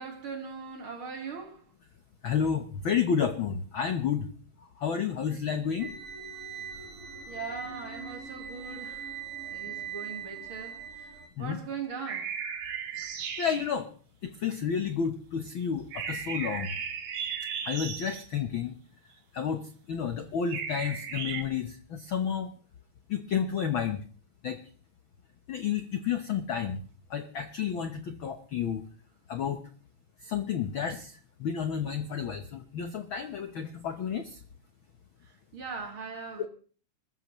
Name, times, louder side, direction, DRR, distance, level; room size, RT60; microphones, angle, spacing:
voice 1, 0.0-1.6 7.3-11.1 11.4-12.3 35.5-36.5, right 5 dB, 45° right, 2.3 m, -40 dB
voice 2, 2.2-4.3 4.8-5.9 11.4-11.6 13.4-13.9 14.2-16.7 17.6-18.8 19.3-22.5 23.1-24.0 24.4-24.6 25.5-26.8 27.1-28.8 29.3-29.6 30.2-34.4 36.4-36.5, left 7 dB, 70° left, 1.2 m, -31 dB
sound 1, 5.8-11.3, right 6 dB, 30° right, 4.2 m, -41 dB
sound 2, 12.1-13.7 15.9-18.3 20.5-21.4, right 7 dB, 65° right, 2.9 m, -35 dB
26.0 x 14.0 x 3.1 m
omnidirectional pair, 3.6 m